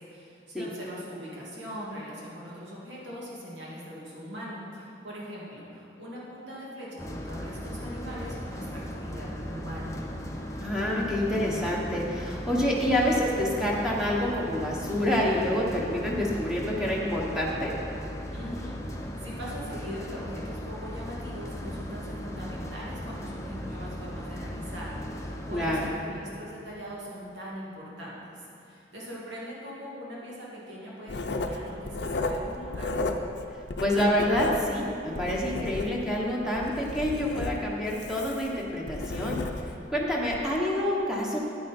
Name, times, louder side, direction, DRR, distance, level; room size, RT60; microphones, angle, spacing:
voice 1, 0.0-10.0 18.3-18.7 19.2-33.0, equal, 80° right, -6 dB, 2.4 m, -41 dB
sound 1, 7.0-25.9, equal, 15° left, 0.7 m, -37 dB
voice 2, 10.5-17.7 25.5-25.9 33.8-41.4, left 1 dB, 5° right, -4 dB, 1.1 m, -27 dB
Writing, 31.1-33.4 33.7-36.2 36.5-39.8 40.3-40.5, left 2 dB, 65° left, 0.6 m, -33 dB
9.5 x 9.4 x 4.3 m, 2.7 s
head